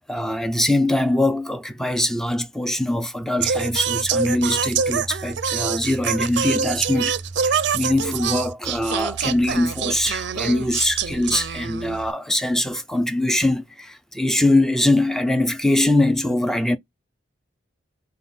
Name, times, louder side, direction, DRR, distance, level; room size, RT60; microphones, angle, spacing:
voice 1, 0.1-16.8, left 1 dB, ahead, 0.4 m, -22 dB
Singing, 3.4-12.1, right 6 dB, 60° right, 0.4 m, -25 dB
5.6 x 2.2 x 3.5 m
head